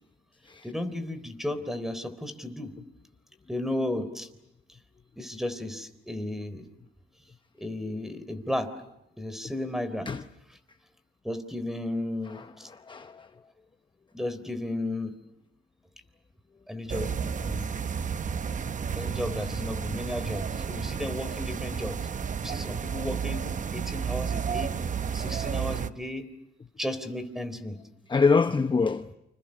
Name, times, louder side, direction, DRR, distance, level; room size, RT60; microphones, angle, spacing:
voice 1, 0.6-2.7 3.5-4.3 5.2-6.6 7.6-8.7 9.2-10.1 10.5-10.6 11.2-12.7 14.1-15.1 16.7-17.8 18.9-22.0 22.4-23.4 23.7-24.7 25.1-26.2 26.8-27.8, left 1 dB, ahead, 3.7 m, -34 dB
voice 2, 12.3-13.3 28.1-29.1, left 4 dB, 25° left, 0.9 m, -25 dB
sound 1, 16.9-25.9, right 7 dB, 40° right, 0.9 m, -32 dB
29.0 x 27.0 x 6.6 m
cardioid pair, 90°, 20 cm